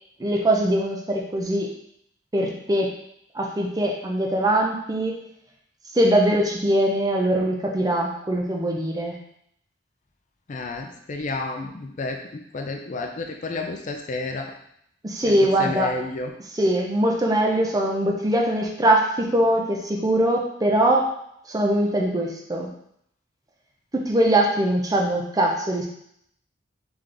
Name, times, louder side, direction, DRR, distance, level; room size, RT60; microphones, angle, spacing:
voice 1, 0.2-1.8 2.3-2.9 3.3-5.2 5.9-9.2 15.0-16.0 16.5-21.2 21.5-22.7 23.9-25.9, right 1 dB, 20° right, 0 dB, 0.5 m, -22 dB
voice 2, 10.5-12.2 12.5-14.5 15.2-16.3, left 2 dB, 40° left, 3 dB, 0.4 m, -31 dB
3.8 x 3.5 x 3.3 m, 0.71 s
head